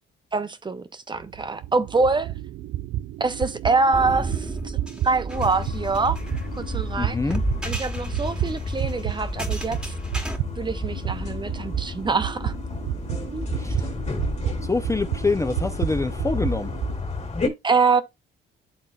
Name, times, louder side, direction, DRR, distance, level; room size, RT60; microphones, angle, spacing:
voice 1, 0.3-2.3 3.2-4.8 5.0-6.2 6.5-7.2 7.6-9.9 10.6-12.5 13.3-13.5 17.6-18.0, right 4 dB, 25° right, 0.7 m, -24 dB
sound 1, 1.1-9.2 9.5-17.0, right 14 dB, 70° right, 0.4 m, -31 dB
sound 2, 3.9-10.4, right 2 dB, 5° right, 1.2 m, -33 dB
sound 3, 5.3-17.5, left 3 dB, 35° left, 2.0 m, -31 dB
voice 2, 6.9-7.4 13.6-13.9 14.7-16.7, left 3 dB, 15° left, 0.5 m, -25 dB
11.0 x 3.8 x 2.3 m
cardioid pair, 90°, 20 cm